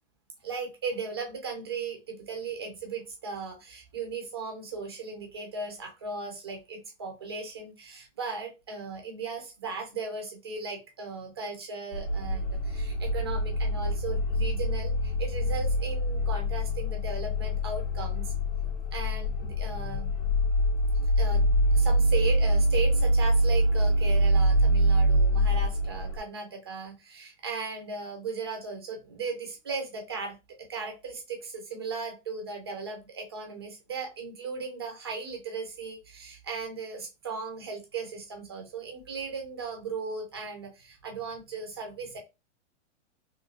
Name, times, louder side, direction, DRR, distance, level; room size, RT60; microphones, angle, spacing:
voice 1, 0.4-18.3 18.9-20.1 21.2-21.4 21.7-30.4 30.7-42.2, right 4 dB, 20° right, 2 dB, 0.4 m, -37 dB
sound 1, 11.9-26.2, equal, 85° left, 0.9 m, -25 dB
3.0 x 2.7 x 2.6 m, 0.26 s
supercardioid pair, 175°, 36 cm